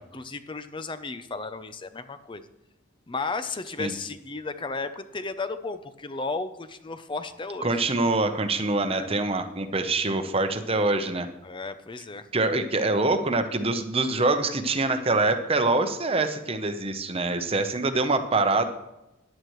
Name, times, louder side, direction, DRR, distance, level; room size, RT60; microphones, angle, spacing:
voice 1, 0.1-2.5 3.1-7.9 8.8-9.1 11.4-12.3, left 3 dB, 25° left, 10 dB, 0.6 m, -34 dB
voice 2, 7.6-11.3 12.3-18.7, right 2 dB, 30° right, 8 dB, 0.9 m, -25 dB
14.5 x 11.0 x 3.2 m, 0.95 s
head